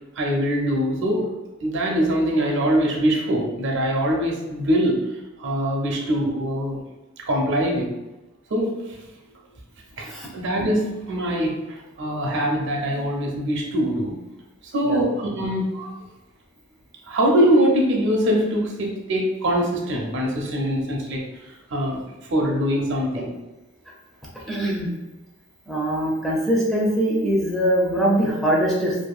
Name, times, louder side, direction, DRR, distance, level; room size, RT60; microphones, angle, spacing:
voice 1, 0.2-1.3 1.6-6.8 7.3-7.9 8.5-9.0 10.0-14.2 14.7-15.9 17.1-22.0 22.3-23.3, equal, 60° right, -1 dB, 0.6 m, -23 dB
voice 2, 24.5-24.9 25.7-28.9, right 1 dB, ahead, -5 dB, 0.4 m, -22 dB
2.6 x 2.4 x 2.3 m, 1.0 s
head